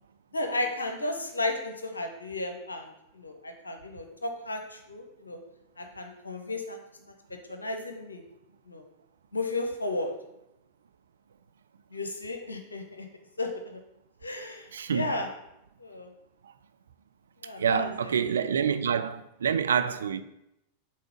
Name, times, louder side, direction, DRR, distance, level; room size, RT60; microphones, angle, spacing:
voice 1, 0.3-2.8 3.1-4.6 4.9-5.4 5.8-6.8 7.5-8.2 8.7-8.8 9.3-10.1 11.9-13.1 13.4-13.8 14.2-15.3 15.8-16.1 17.4-18.1 18.7-18.8, left 2 dB, 80° left, 0.7 m, -33 dB
voice 2, 14.7-15.2 17.6-20.2, right 7 dB, 70° right, 0.3 m, -27 dB
5.6 x 3.8 x 5.1 m
figure-of-eight pair, 90°, 0 cm